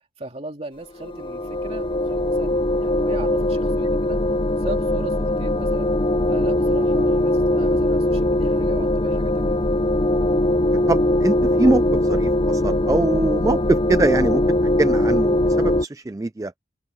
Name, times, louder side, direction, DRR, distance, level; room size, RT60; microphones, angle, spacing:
voice 1, 0.2-4.2 4.6-5.9 6.3-9.6, right 1 dB, 35° right, 2.6 m, -37 dB
sound 1, 1.0-15.8, left 1 dB, 30° left, 0.6 m, -21 dB
voice 2, 10.7-16.5, right 2 dB, 20° right, 0.3 m, -23 dB
head